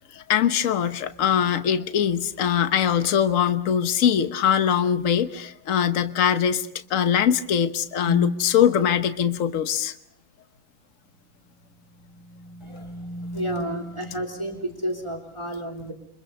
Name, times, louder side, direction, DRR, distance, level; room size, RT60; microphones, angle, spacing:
voice 1, 0.1-9.9, left 8 dB, 50° left, 10 dB, 1.3 m, -22 dB
sound 1, 8.0-8.6 11.5-15.0, equal, 70° left, 2.5 m, -35 dB
voice 2, 12.6-13.1 13.3-15.9, right 1 dB, 15° right, 2 dB, 3.1 m, -31 dB
28.0 x 25.0 x 5.4 m, 0.72 s
omnidirectional pair, 2.1 m